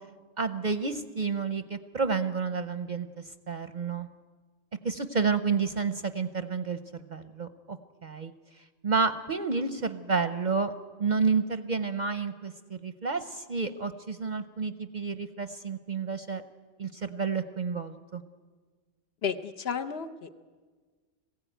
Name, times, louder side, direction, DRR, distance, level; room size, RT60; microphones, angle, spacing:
voice 1, 0.4-4.1 4.8-10.7 11.0-16.4 16.8-18.2, right 5 dB, 45° right, 10 dB, 0.7 m, -30 dB
voice 2, 19.2-20.4, left 6 dB, 55° left, 7 dB, 1.0 m, -32 dB
20.0 x 15.5 x 9.2 m, 1.5 s
omnidirectional pair, 1.3 m